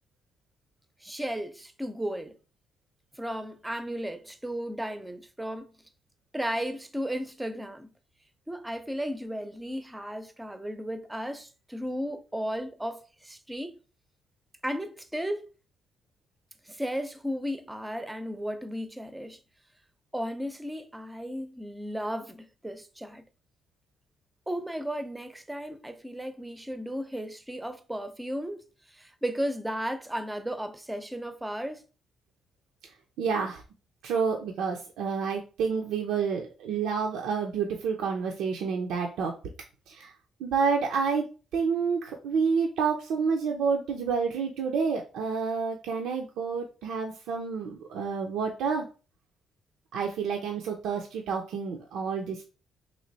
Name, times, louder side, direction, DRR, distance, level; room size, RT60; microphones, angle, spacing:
voice 1, 1.0-2.3 3.1-5.8 6.3-7.9 8.5-13.8 14.6-15.5 16.7-19.4 20.1-23.2 24.5-31.8, equal, 10° right, 0.6 m, -34 dB
voice 2, 33.2-33.6 34.0-39.3 39.9-40.1 40.4-48.9 49.9-52.5, right 5 dB, 85° right, 0.5 m, -29 dB
3.1 x 2.9 x 4.0 m
cardioid pair, 90°, 0 cm